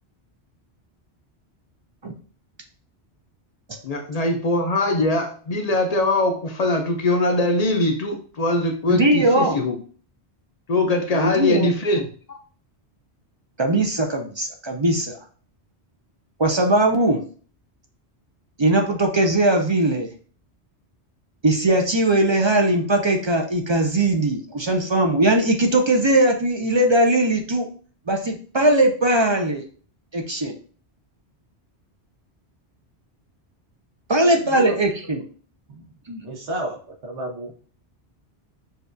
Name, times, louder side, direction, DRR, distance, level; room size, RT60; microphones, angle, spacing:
voice 1, 3.8-9.8 10.7-12.4, left 2 dB, 45° left, 4 dB, 0.5 m, -22 dB
voice 2, 8.9-9.6 11.1-11.7 13.6-15.2 16.4-17.2 18.6-20.1 21.4-27.7 28.1-29.6 30.1-30.5 34.1-35.2 36.1-36.2, right 1 dB, 45° right, 3 dB, 0.3 m, -20 dB
voice 3, 34.2-34.7 35.7-35.8 36.2-37.5, right 1 dB, 85° right, 1 dB, 1.3 m, -32 dB
6.6 x 2.3 x 2.5 m, 0.42 s
omnidirectional pair, 1.1 m